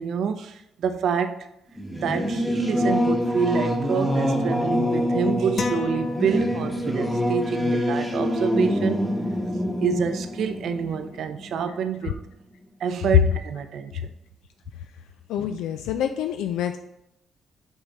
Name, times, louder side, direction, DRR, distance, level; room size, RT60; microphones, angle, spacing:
voice 1, 0.0-1.5 1.9-9.0 9.8-12.2 12.8-14.1, right 7 dB, 70° right, 0.5 m, -27 dB
Singing / Musical instrument, 1.8-11.9, equal, 5° left, 1.1 m, -25 dB
sound 1, 5.6-7.1, left 4 dB, 40° left, 0.6 m, -32 dB
voice 2, 15.3-16.8, left 10 dB, 90° left, 0.3 m, -27 dB
6.9 x 3.7 x 4.1 m
cardioid pair, 90°, 0 cm